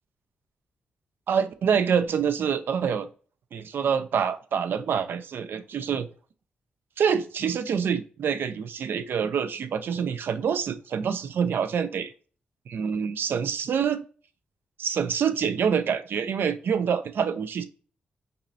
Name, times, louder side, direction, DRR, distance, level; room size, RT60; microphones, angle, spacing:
voice 1, 1.3-3.1 3.5-6.1 7.0-12.1 12.7-14.0 14.8-17.6, right 7 dB, 70° right, 10 dB, 0.5 m, -26 dB
5.3 x 2.1 x 2.6 m, 0.39 s
supercardioid pair, 45°, 4 cm